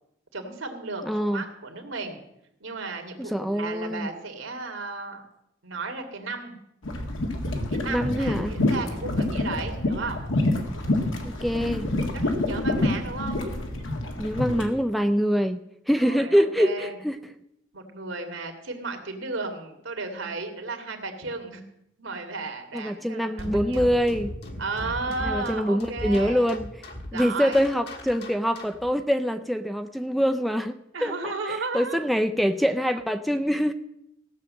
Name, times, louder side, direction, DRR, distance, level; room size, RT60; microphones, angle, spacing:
voice 1, 0.3-2.2 2.6-5.2 5.6-6.5 7.7-10.2 12.1-13.5 15.9-17.0 17.7-21.6 22.0-23.9 24.6-26.5 27.1-27.6 30.9-32.0, right 3 dB, 80° right, 5 dB, 2.1 m, -34 dB
voice 2, 1.0-1.4 3.2-4.1 7.9-8.6 11.2-11.9 14.2-17.2 22.7-24.3 25.2-26.7 27.1-31.3 31.7-33.7, equal, ahead, 9 dB, 0.4 m, -25 dB
sound 1, 6.8-14.7, left 1 dB, 85° left, 1.9 m, -27 dB
sound 2, 23.4-28.9, left 1 dB, 55° left, 1.6 m, -37 dB
16.0 x 6.4 x 7.4 m, 0.81 s
head